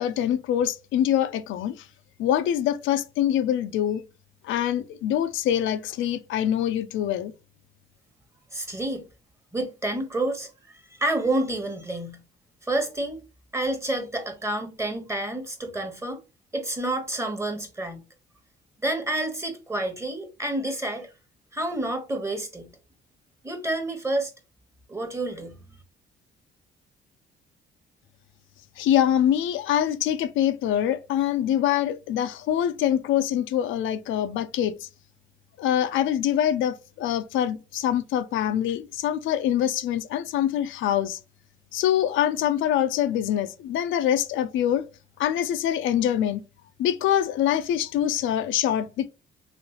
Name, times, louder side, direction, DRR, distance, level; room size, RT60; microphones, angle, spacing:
voice 1, 0.0-1.8 2.2-4.0 4.4-7.3 28.8-34.9 35.6-41.2 41.7-44.8 45.2-46.4 46.8-49.1, left 10 dB, 80° left, 0.4 m, -24 dB
voice 2, 8.5-9.1 9.5-10.5 10.9-12.2 12.6-13.2 13.5-16.2 16.5-18.0 18.8-21.1 21.5-22.7 23.4-24.3 24.9-25.6, right 1 dB, 15° right, 1.0 m, -29 dB
3.1 x 3.1 x 2.8 m
cardioid pair, 90°, 20 cm